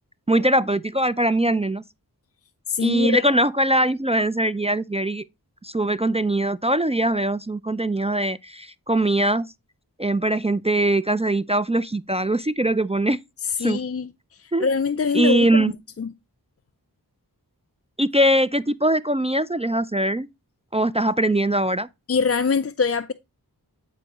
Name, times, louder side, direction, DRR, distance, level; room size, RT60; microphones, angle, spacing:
voice 1, 0.3-1.8 2.8-5.2 5.6-9.5 10.0-13.2 13.6-13.8 14.5-14.7 15.1-15.7 18.0-20.3 20.7-21.9, right 1 dB, 15° right, 0.3 m, -21 dB
voice 2, 2.7-3.2 13.6-14.1 14.4-15.6 16.0-16.1 22.1-23.1, left 5 dB, 40° left, 0.5 m, -23 dB
9.8 x 4.7 x 2.9 m
wide cardioid pair, 45°, 39 cm